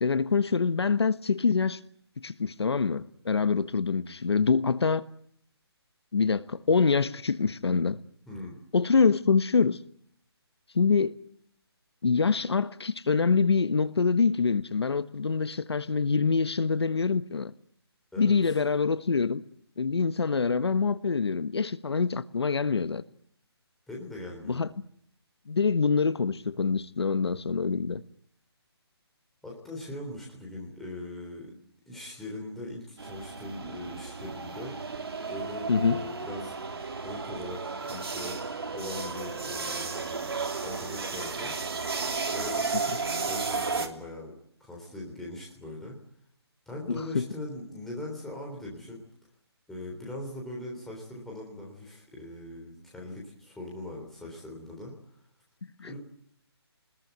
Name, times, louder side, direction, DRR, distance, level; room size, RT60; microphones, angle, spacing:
voice 1, 0.0-1.8 2.2-5.0 6.1-8.0 8.7-9.8 10.7-11.2 12.0-17.5 18.2-19.4 19.8-23.0 24.5-24.8 25.5-28.0 35.7-36.0 46.9-47.3 55.8-56.0, left 5 dB, 70° left, 1.3 m, -25 dB
voice 2, 8.3-8.6 18.1-18.5 23.9-24.6 29.4-31.5 31.9-34.7 35.3-36.5 37.0-38.4 38.7-41.5 42.3-44.4 44.6-46.0 46.7-49.0 49.7-54.9 55.8-56.0, left 1 dB, ahead, 3.5 m, -40 dB
sound 1, 33.0-43.9, right 4 dB, 65° right, 3.1 m, -33 dB
28.0 x 21.0 x 9.4 m
hypercardioid pair, 175°, 14 cm